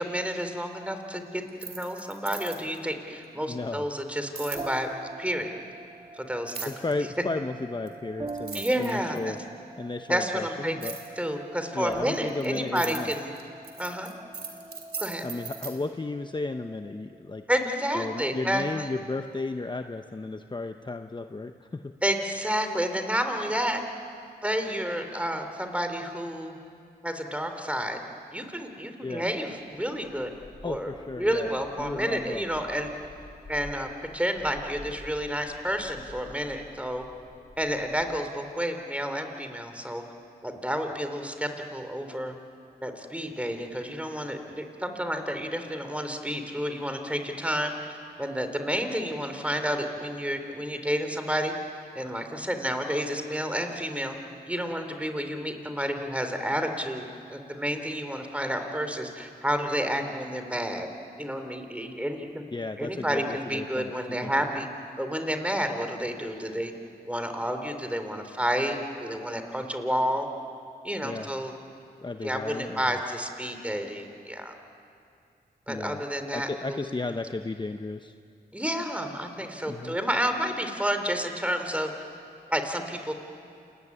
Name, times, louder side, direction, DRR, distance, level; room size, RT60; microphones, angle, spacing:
voice 1, 0.0-4.9 5.2-5.5 6.2-6.7 8.5-9.3 10.1-13.3 13.8-14.1 15.0-15.3 17.5-18.9 22.0-23.8 24.4-26.6 27.0-28.0 28.3-30.3 30.6-30.9 31.2-32.9 33.5-37.0 37.6-40.0 40.4-42.3 42.8-51.5 51.9-54.1 54.5-60.9 61.2-62.4 62.8-64.7 65.0-66.7 67.1-70.3 70.8-71.5 72.2-74.5 75.7-76.8 78.5-81.9 82.5-83.1, equal, 10° right, 6 dB, 3.6 m, -30 dB
sound 1, 1.5-2.8 4.3-4.7 6.5-6.9 7.9-8.0 8.3-9.4 10.8-11.1 11.9-15.7, right 5 dB, 75° right, 3.4 m, -38 dB
voice 2, 3.4-3.9 6.6-9.4 9.8-11.0 11.7-13.1 15.2-17.5 17.9-22.0 29.0-29.2 30.6-31.5 31.8-32.4 62.5-63.9 64.2-64.3 71.0-71.3 72.0-73.0 75.7-76.0 76.3-78.1 79.7-80.0, left 3 dB, 25° left, 7 dB, 0.8 m, -34 dB
sound 2, 4.5-17.8, right 3 dB, 25° right, 1.0 m, -44 dB
sound 3, 29.9-38.1, left 1 dB, 75° left, 6.2 m, -49 dB
28.5 x 21.0 x 9.8 m, 2.5 s
cardioid pair, 60°, 17 cm